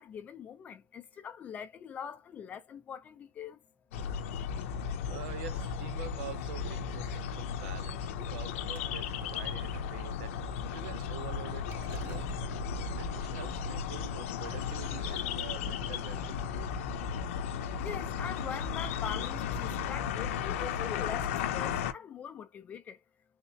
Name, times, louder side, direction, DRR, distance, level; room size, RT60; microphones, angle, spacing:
voice 1, 0.0-3.6 17.8-23.0, left 8 dB, 20° left, 0.5 m, -42 dB
sound 1, 3.9-21.9, left 7 dB, 85° left, 0.6 m, -35 dB
voice 2, 4.9-12.5 13.0-16.6, right 11 dB, 70° right, 0.7 m, -46 dB
sound 2, 7.1-7.7 8.0-8.5 8.8-9.0 9.3-9.5 11.4-11.5 11.7-13.8, right 11 dB, 35° right, 0.6 m, -45 dB
3.6 x 3.0 x 2.7 m
supercardioid pair, 170°, 7 cm